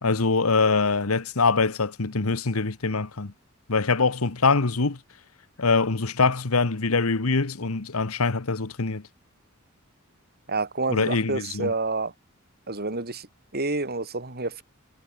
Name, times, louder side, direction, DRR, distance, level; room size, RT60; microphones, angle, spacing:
voice 1, 0.0-3.3 3.7-5.0 5.6-9.0 10.9-11.7, left 4 dB, 90° left, 1.3 m, -23 dB
voice 2, 10.5-12.1 12.7-13.3 13.5-14.6, right 3 dB, 50° right, 4.2 m, -28 dB
head